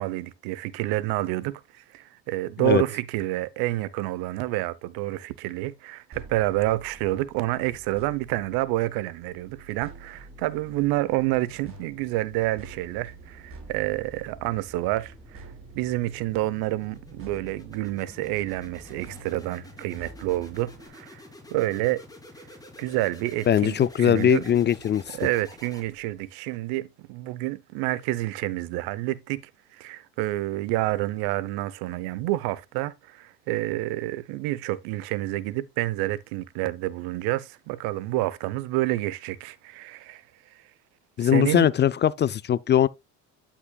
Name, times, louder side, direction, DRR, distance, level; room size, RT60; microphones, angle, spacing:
voice 1, 0.0-21.2 21.5-22.0 22.4-22.5 22.8-24.6 25.1-29.4 29.7-40.2 40.5-40.6 41.2-41.7, right 17 dB, 80° right, 0.9 m, -28 dB
sound 1, 6.1-20.9, right 3 dB, 35° right, 3.8 m, -48 dB
sound 2, 10.1-26.3, left 1 dB, 10° left, 3.4 m, -50 dB
voice 2, 23.5-25.2 41.2-42.9, left 10 dB, 30° left, 0.4 m, -21 dB
12.5 x 5.9 x 2.3 m
supercardioid pair, 85°, 36 cm